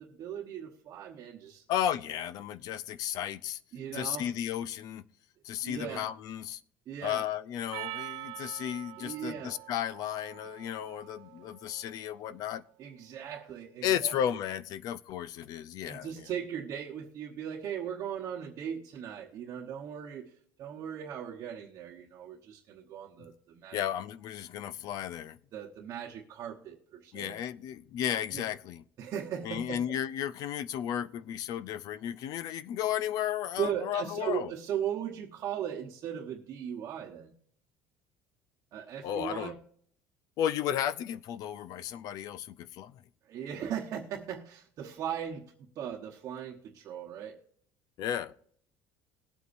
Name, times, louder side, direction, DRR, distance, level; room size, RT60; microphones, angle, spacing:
voice 1, 0.0-1.6 3.7-4.3 5.6-6.1 6.9-7.2 9.0-9.6 12.8-14.2 15.8-20.3 20.6-23.8 25.5-27.3 28.3-28.4 29.0-30.0 33.6-37.3 38.7-39.6 43.3-47.4, right 9 dB, 40° right, 1.1 m, -38 dB
voice 2, 1.7-3.6 3.9-5.0 5.4-6.6 7.0-12.6 13.8-16.3 23.7-25.4 27.1-28.8 29.4-34.5 39.0-39.5 40.4-43.0 48.0-48.3, left 10 dB, 50° left, 0.5 m, -34 dB
Percussion, 7.7-12.3, right 18 dB, 60° right, 0.5 m, -45 dB
20.0 x 8.3 x 2.6 m
cardioid pair, 170°, 8 cm